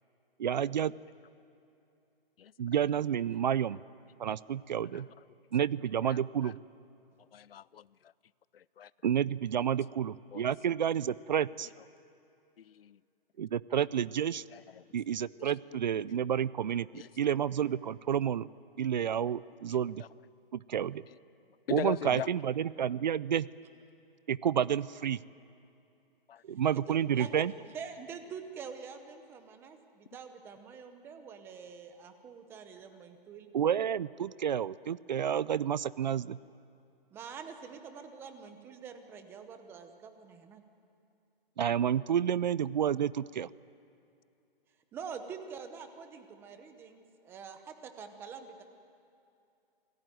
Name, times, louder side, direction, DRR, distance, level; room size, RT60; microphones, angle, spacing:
voice 1, 0.4-0.9 2.6-3.8 4.2-5.1 5.5-6.6 9.0-11.7 13.4-14.4 14.9-18.5 18.8-20.0 20.5-21.0 21.7-23.5 24.3-25.2 26.5-27.5 33.5-36.4 41.6-43.5, right 9 dB, 50° right, 20 dB, 0.5 m, -30 dB
voice 2, 7.3-7.9 8.5-8.9 10.3-10.5 12.6-13.0 14.5-14.8 16.0-16.1 16.9-17.1 19.7-19.8 21.7-22.3 26.3-26.4, left 9 dB, 75° left, 22 dB, 0.6 m, -40 dB
voice 3, 26.7-27.3 27.7-33.5 37.1-40.6 44.9-48.6, right 6 dB, 10° right, 8 dB, 0.8 m, -46 dB
27.5 x 19.0 x 9.2 m, 2.6 s
hypercardioid pair, 165°, 29 cm